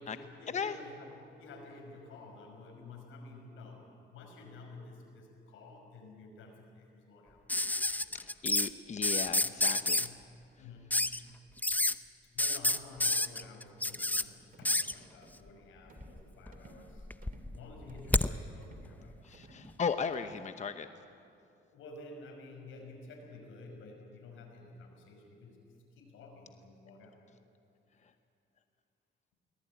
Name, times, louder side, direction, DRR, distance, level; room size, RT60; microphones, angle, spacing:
voice 1, 0.0-7.4 8.0-8.2 9.4-9.5 10.0-10.3 10.6-11.4 12.3-17.1 17.5-19.2 21.7-27.2, left 2 dB, 85° left, 2 dB, 5.6 m, -51 dB
sound 1, 7.5-8.7 9.0-10.1 10.9-11.2 11.6-11.9 12.4-14.2 14.7-14.9 16.0-16.6 16.9-18.3 19.7-19.8, left 2 dB, 10° left, 0.6 m, -29 dB
voice 2, 8.1-10.1 19.2-20.9, left 6 dB, 35° left, 9 dB, 0.9 m, -36 dB
sound 2, 13.9-14.2 14.5-14.8 15.2-15.5 15.9-16.2 16.5-16.9 17.2-17.5 17.9-18.2 18.6-18.9 19.3-19.7 20.1-20.5, right 3 dB, 45° right, 2.7 m, -57 dB
23.5 x 19.0 x 9.1 m, 2.6 s
cardioid pair, 90°, 20 cm